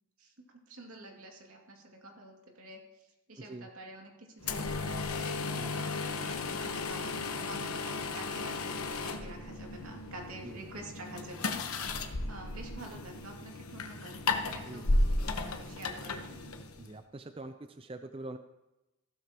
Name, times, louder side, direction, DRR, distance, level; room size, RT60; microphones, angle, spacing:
voice 1, 0.2-5.1 5.7-14.1 14.5-16.5, right 2 dB, 80° right, 1 dB, 2.5 m, -49 dB
voice 2, 3.4-3.7 5.6-5.9 10.4-10.6 14.7-14.9 16.8-18.4, right 2 dB, 25° right, 8 dB, 0.4 m, -44 dB
sound 1, 4.4-17.0, left 2 dB, 85° left, 1.1 m, -34 dB
15.5 x 12.5 x 3.0 m, 0.99 s
head